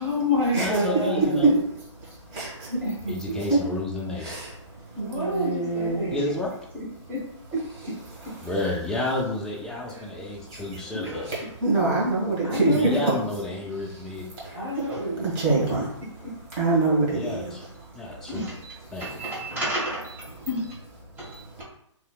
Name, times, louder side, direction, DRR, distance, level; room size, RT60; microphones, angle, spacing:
voice 1, 0.0-1.5 2.8-3.4 5.0-6.3 6.7-7.3 7.5-7.6 9.9-10.1 11.0-11.2 12.4-13.0 14.5-15.3 16.2-16.4 18.3-18.7 19.0-20.2 20.4-20.8 21.2-21.6, left 1 dB, 10° right, -6 dB, 1.1 m, -29 dB
voice 2, 0.5-1.5 3.1-4.3 6.1-6.5 8.4-11.3 12.7-14.2 17.1-17.6 17.9-18.4 18.9-19.2, left 2 dB, 5° left, -3 dB, 0.5 m, -30 dB
voice 3, 2.0-2.8 3.5-3.6 4.2-4.4 5.0-6.1 8.4-8.5 10.2-10.8 11.2-12.8 14.3-14.8 15.2-16.0 16.5-18.2 18.9-19.0 21.3-21.6, right 3 dB, 30° right, -5 dB, 1.5 m, -26 dB
3.1 x 3.0 x 2.3 m, 0.72 s
hypercardioid pair, 140°, 16 cm